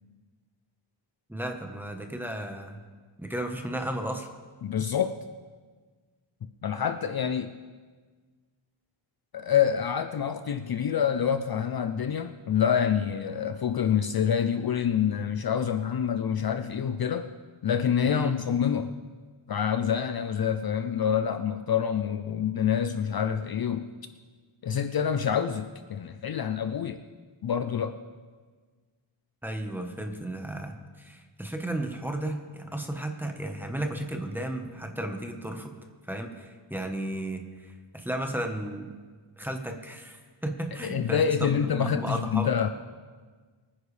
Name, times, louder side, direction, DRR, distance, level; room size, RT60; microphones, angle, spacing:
voice 1, 1.3-2.8 3.2-4.3 18.0-18.3 29.4-35.7 36.1-38.9 39.4-42.5, right 1 dB, 5° right, 4 dB, 1.1 m, -34 dB
voice 2, 4.6-5.2 6.6-7.5 9.3-17.3 17.6-18.9 19.5-23.9 24.6-27.0 27.4-28.0 40.8-42.7, left 8 dB, 50° left, 10 dB, 0.5 m, -27 dB
24.0 x 10.0 x 3.3 m, 1.5 s
wide cardioid pair, 150°, 48 cm